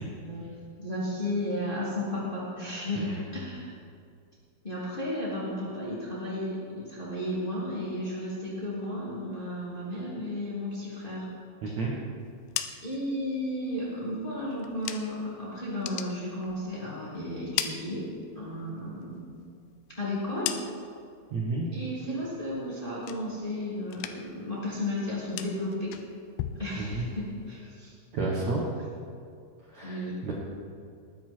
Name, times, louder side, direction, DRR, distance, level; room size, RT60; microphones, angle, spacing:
voice 1, 0.8-3.7 4.6-11.3 11.6-11.8 12.8-18.1 18.3-19.3 19.9-20.6 21.7-25.9 26.6-27.9 29.8-30.2, left 1 dB, 15° left, -8 dB, 2.5 m, -33 dB
voice 2, 11.6-11.9 21.3-21.6 26.8-27.0 28.1-28.6 29.7-30.3, right 3 dB, 80° right, -4 dB, 1.6 m, -31 dB
sound 1, 12.2-15.3 15.7-17.0 17.3-18.6 19.0-21.1 21.5-21.9 22.3-23.6 23.9-24.5 24.7-27.6, left 11 dB, 85° left, 3.2 m, -39 dB
19.5 x 10.0 x 4.6 m, 2.3 s
omnidirectional pair, 5.8 m